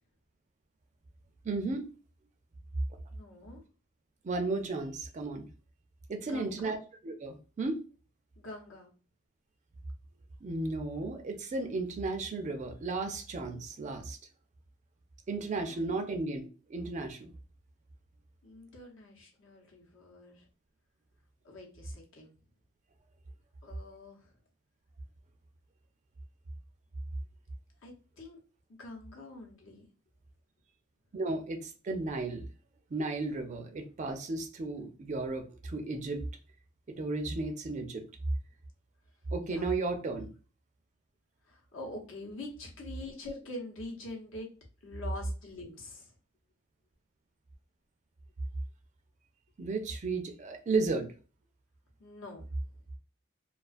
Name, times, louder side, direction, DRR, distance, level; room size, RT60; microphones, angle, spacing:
voice 1, 1.4-1.9 4.2-5.5 6.1-6.8 7.0-7.8 10.4-14.2 15.3-17.3 31.1-32.4 32.9-36.2 36.9-38.0 39.3-40.3 49.6-51.1, right 3 dB, 35° right, 5 dB, 0.4 m, -34 dB
voice 2, 3.1-3.6 6.2-6.8 8.4-8.9 15.6-16.0 18.4-20.5 21.4-22.3 23.6-24.3 27.8-28.4 28.8-29.8 39.4-39.8 41.5-44.5 44.8-46.1 52.0-52.4, left 2 dB, 70° left, -1 dB, 0.8 m, -45 dB
2.3 x 2.3 x 2.4 m, 0.35 s
head